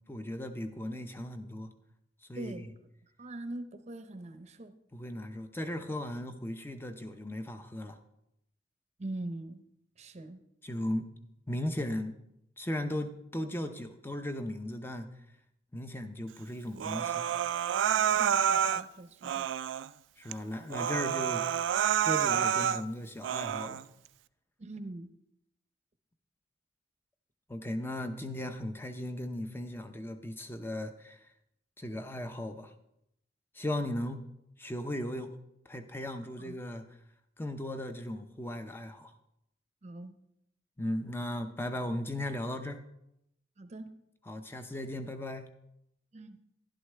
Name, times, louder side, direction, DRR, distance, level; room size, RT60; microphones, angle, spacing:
voice 1, 0.1-1.7 2.3-2.7 4.9-8.0 10.6-11.1 11.5-12.2 12.6-15.1 15.7-17.3 20.2-23.9 27.5-31.2 31.8-32.7 33.5-34.3 34.6-35.3 35.7-36.9 37.4-39.1 40.8-42.8 44.3-45.5, left 1 dB, 10° left, 8 dB, 0.6 m, -37 dB
voice 2, 2.4-2.7 3.2-4.7 9.0-9.6 10.0-10.4 17.9-19.5 24.6-25.1 36.4-36.6 39.8-40.1 43.6-43.9 46.1-46.4, right 2 dB, 40° right, 10 dB, 0.7 m, -42 dB
Human voice, 16.8-18.8 19.2-19.9 20.3-20.4 20.7-22.8 23.2-23.8, right 8 dB, 80° right, 0.3 m, -29 dB
11.5 x 11.0 x 3.3 m, 0.81 s
head